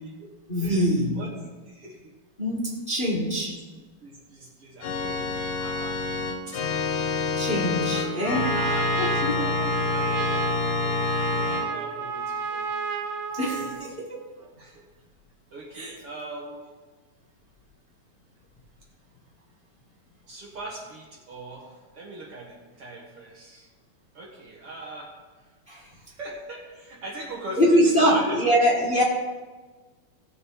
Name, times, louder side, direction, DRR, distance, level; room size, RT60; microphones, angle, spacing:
voice 1, 0.5-1.2 2.4-3.5 5.6-5.7 7.4-8.6 9.0-9.5 13.3-14.2 15.7-15.9 25.7-25.8 27.6-29.0, equal, 45° left, -5 dB, 0.6 m, -23 dB
voice 2, 1.7-2.0 3.0-3.6 4.0-6.0 6.5-6.6 8.5-8.9 9.2-12.7 13.5-14.0 14.6-14.8 15.5-16.7 20.2-23.7 24.1-25.1 25.7-28.7, right 2 dB, 50° right, -3 dB, 2.0 m, -41 dB
Organ, 4.8-11.6, left 4 dB, 75° left, 2.9 m, -27 dB
Trumpet, 7.9-13.9, right 5 dB, 85° right, 1.5 m, -30 dB
18.0 x 6.9 x 4.7 m, 1.3 s
omnidirectional pair, 4.3 m